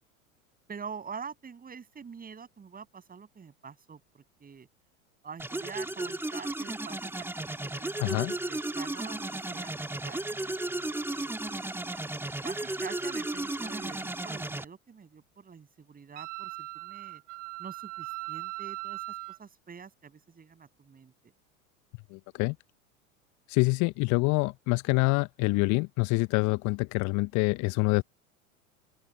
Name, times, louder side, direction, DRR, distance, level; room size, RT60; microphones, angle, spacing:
voice 1, 0.7-4.7 5.2-10.8 11.2-11.7 12.4-17.2 17.6-21.3, right 6 dB, 20° right, 7.6 m, -46 dB
sound 1, 5.4-14.6, right 2 dB, 5° right, 2.5 m, -34 dB
voice 2, 8.0-8.3 22.1-22.5 23.5-28.0, left 28 dB, 45° left, 1.1 m, -26 dB
Wind instrument woodwind instrument, 16.2-19.4, right 23 dB, 60° right, 2.1 m, -39 dB
open air
figure-of-eight pair, 85°, 42 cm